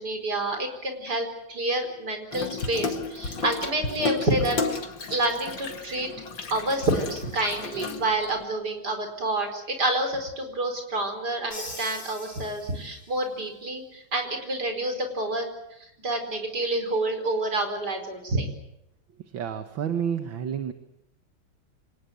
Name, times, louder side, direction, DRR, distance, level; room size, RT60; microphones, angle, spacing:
voice 1, 0.0-4.6 5.1-6.1 6.5-18.5, right 2 dB, 55° right, 6 dB, 5.2 m, -28 dB
Water tap faucet / Sink (filling or washing), 2.3-8.4, left 4 dB, 70° left, 2.7 m, -33 dB
Crash cymbal, 11.5-13.2, left 2 dB, 35° left, 6.6 m, -41 dB
voice 2, 19.3-20.7, right 8 dB, 75° right, 7 dB, 2.1 m, -29 dB
26.0 x 19.0 x 9.3 m, 0.84 s
omnidirectional pair, 2.2 m